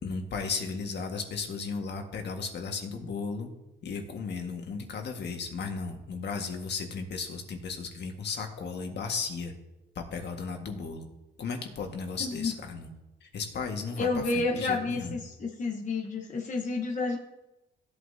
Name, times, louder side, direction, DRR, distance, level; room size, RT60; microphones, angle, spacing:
voice 1, 0.0-3.5 3.8-9.5 9.9-11.1 11.4-12.9 13.2-15.1, left 5 dB, 60° left, 3 dB, 1.6 m, -35 dB
voice 2, 12.2-12.5 14.0-17.2, left 3 dB, 40° left, 1 dB, 1.0 m, -30 dB
15.5 x 8.2 x 2.7 m, 0.99 s
cardioid pair, 90°, 20 cm